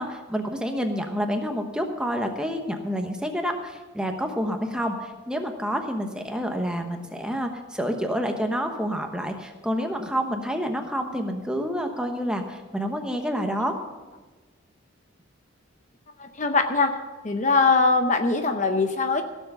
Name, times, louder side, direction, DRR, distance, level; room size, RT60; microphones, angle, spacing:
voice 1, 0.0-13.7, equal, 5° right, 4 dB, 1.0 m, -28 dB
voice 2, 16.2-17.0 17.2-19.2, left 3 dB, 35° left, 6 dB, 0.7 m, -22 dB
16.0 x 7.2 x 6.8 m, 1.3 s
head